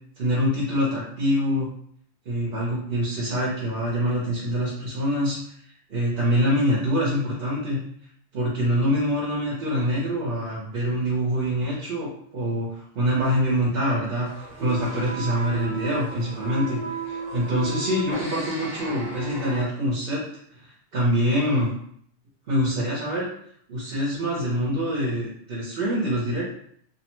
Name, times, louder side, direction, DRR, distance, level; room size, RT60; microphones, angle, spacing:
voice 1, 0.2-1.7 2.3-5.4 5.9-7.8 8.3-14.3 14.6-20.2 20.5-21.7 22.5-23.3 23.7-26.5, equal, 55° right, -5 dB, 0.8 m, -25 dB
sound 1, 14.2-19.7, right 3 dB, 20° right, 0.9 m, -34 dB
2.6 x 2.1 x 2.9 m, 0.65 s
omnidirectional pair, 1.2 m